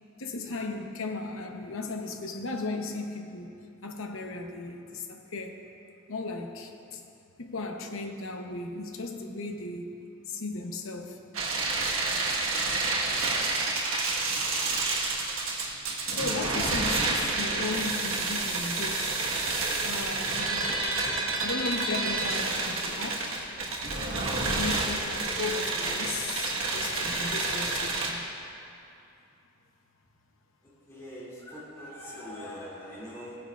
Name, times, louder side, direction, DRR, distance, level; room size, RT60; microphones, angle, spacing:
voice 1, 0.2-3.5 3.8-5.6 6.1-7.0 7.4-9.9 10.3-11.2 16.1-19.1 19.8-20.8 21.4-23.3 24.2-28.3, left 3 dB, 75° left, 4 dB, 0.9 m, -36 dB
sound 1, 11.3-28.1, right 3 dB, 85° right, 1.4 m, -29 dB
voice 2, 30.9-33.4, left 1 dB, 15° left, -9 dB, 2.4 m, -42 dB
16.5 x 9.6 x 2.4 m, 2.6 s
head